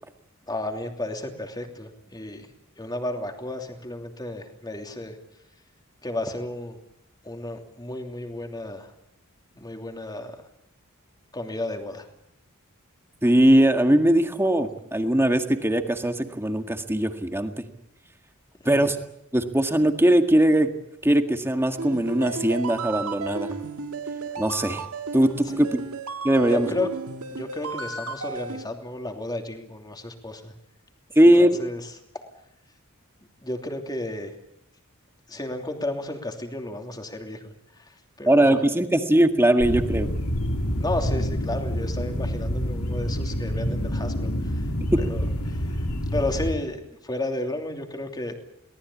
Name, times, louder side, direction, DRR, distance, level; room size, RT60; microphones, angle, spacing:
voice 1, 0.5-2.5 2.8-5.2 6.0-6.8 7.2-8.9 9.5-10.4 11.3-12.1 25.4-25.6 26.4-26.9 27.3-30.5 31.4-31.9 33.4-34.3 35.3-38.6 40.8-44.7 45.0-48.3, left 1 dB, 20° left, 4 dB, 3.0 m, -33 dB
voice 2, 13.2-17.5 18.7-19.0 19.3-20.7 21.0-23.5 24.4-24.8 25.1-25.9 26.2-26.7 31.2-31.6 38.3-40.1, right 1 dB, 10° right, 6 dB, 1.8 m, -20 dB
sound 1, 21.8-28.6, right 4 dB, 75° right, 1.8 m, -34 dB
sound 2, 39.6-46.6, equal, 85° left, 2.8 m, -27 dB
24.0 x 18.5 x 8.6 m, 0.78 s
head